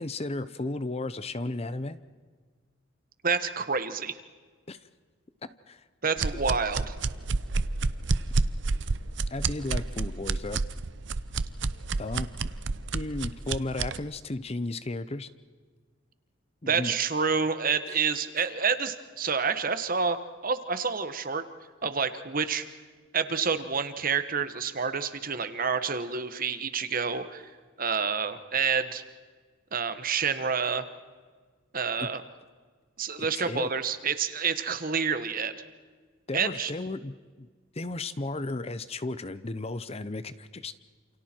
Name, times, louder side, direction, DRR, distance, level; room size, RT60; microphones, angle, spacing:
voice 1, 0.0-2.0 4.7-4.8 5.4-5.8 9.3-10.6 12.0-12.3 12.9-15.3 16.6-16.9 17.9-18.0 32.0-32.1 33.2-33.7 36.3-37.5 37.7-40.7, left 2 dB, 30° left, 14 dB, 0.7 m, -34 dB
voice 2, 3.2-4.1 6.0-6.9 16.7-20.2 20.4-21.4 21.8-22.6 23.1-27.4 27.8-29.0 29.7-30.9 31.7-32.2 33.0-35.5 36.3-36.7, right 5 dB, 45° right, 10 dB, 1.3 m, -28 dB
sound 1, 6.2-14.0, right 3 dB, 60° right, 0.7 m, -29 dB
29.0 x 28.5 x 4.5 m, 1.5 s
head